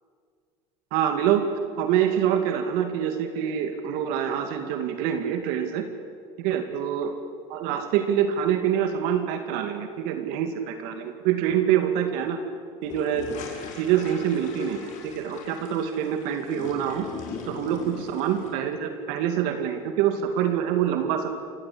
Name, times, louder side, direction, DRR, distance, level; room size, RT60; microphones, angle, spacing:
voice 1, 0.9-1.5 1.8-5.9 6.4-7.1 7.5-12.4 12.8-13.3 13.8-17.1 17.5-21.3, right 9 dB, 75° right, 6 dB, 2.4 m, -25 dB
sound 1, 12.8-18.5, left 5 dB, 55° left, 5.8 m, -39 dB
29.0 x 16.0 x 8.7 m, 2.2 s
supercardioid pair, 105°, 15 cm